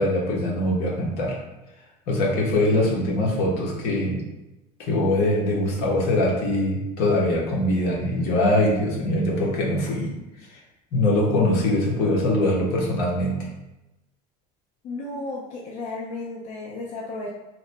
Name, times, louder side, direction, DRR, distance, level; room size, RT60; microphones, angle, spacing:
voice 1, 0.0-1.4 2.1-4.2 4.8-10.2 10.9-13.4, left 1 dB, 65° left, -2 dB, 1.0 m, -22 dB
voice 2, 14.8-17.3, left 2 dB, 40° left, -3 dB, 0.5 m, -33 dB
2.9 x 2.2 x 4.0 m, 0.98 s
cardioid pair, 155°, 17 cm